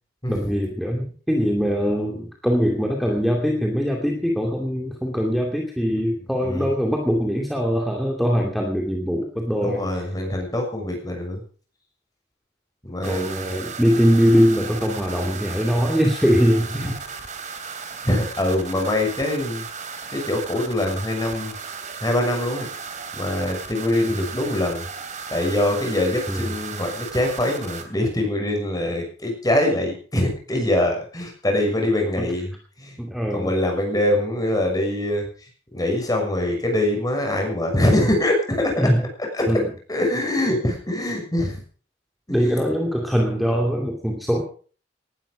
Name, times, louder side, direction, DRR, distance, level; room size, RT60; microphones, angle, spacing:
voice 1, 0.3-9.9 13.0-16.9 24.1-24.2 26.3-26.6 32.2-32.3 33.0-33.5 38.8-39.0 39.5-39.7 42.3-44.4, equal, ahead, 1 dB, 2.5 m, -22 dB
voice 2, 6.4-6.7 9.6-11.4 12.8-13.4 16.7-16.9 18.0-19.7 20.1-21.5 22.0-22.7 23.1-24.8 25.3-33.0 33.3-35.3 35.7-38.9 39.3-39.6 39.9-41.6 42.3-42.6, left 1 dB, 20° left, 2 dB, 6.4 m, -23 dB
sound 1, 13.0-27.8, right 5 dB, 45° right, 3.0 m, -35 dB
19.0 x 12.5 x 5.2 m, 0.41 s
head